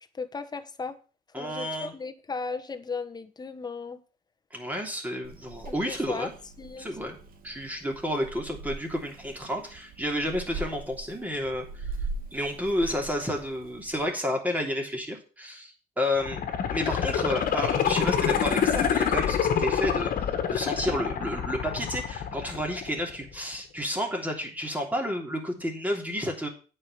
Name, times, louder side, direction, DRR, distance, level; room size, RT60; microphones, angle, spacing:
voice 1, 0.1-1.0 1.4-4.0 5.6-6.3 6.6-7.0, left 4 dB, 25° left, 1.2 m, -36 dB
voice 2, 1.3-1.9 4.5-6.3 6.8-7.2 7.4-11.9 12.3-20.1 20.5-26.5, left 1 dB, 10° right, 3.1 m, -31 dB
Purr / Meow, 5.2-14.0, right 3 dB, 60° right, 1.9 m, -41 dB
sound 1, 16.2-23.2 23.5-23.6, left 8 dB, 55° left, 1.7 m, -27 dB
8.7 x 5.6 x 7.8 m
cardioid pair, 110°, 17 cm